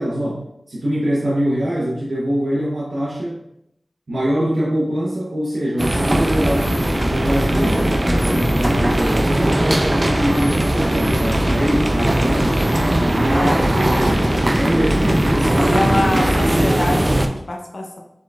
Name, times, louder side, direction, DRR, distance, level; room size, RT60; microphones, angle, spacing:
voice 1, 0.0-3.4 4.1-9.7 10.0-12.6 12.9-13.2 14.6-16.2, equal, 80° right, -6 dB, 0.8 m, -23 dB
sound 1, 5.8-17.3, right 1 dB, 35° right, 0.4 m, -18 dB
voice 2, 13.3-14.5 15.7-18.0, left 1 dB, 70° left, 1 dB, 0.7 m, -25 dB
4.3 x 3.8 x 2.3 m, 0.80 s
wide cardioid pair, 50°, 0 cm